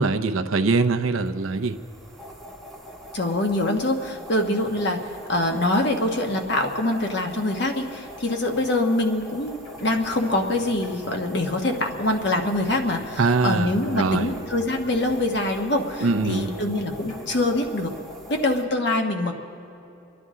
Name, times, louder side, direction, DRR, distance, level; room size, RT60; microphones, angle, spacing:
voice 1, 0.0-1.8 13.2-14.3 16.0-16.5, right 3 dB, 80° right, 7 dB, 0.7 m, -22 dB
sound 1, 1.2-18.6, equal, ahead, 1.0 m, -43 dB
voice 2, 3.1-5.0 5.3-17.9 18.4-19.3, left 1 dB, 55° left, 3 dB, 1.2 m, -24 dB
sound 2, 9.6-11.5 11.7-13.6 13.8-15.6 15.9-17.6, left 1 dB, 80° left, 2.0 m, -45 dB
29.5 x 11.0 x 3.7 m, 2.8 s
head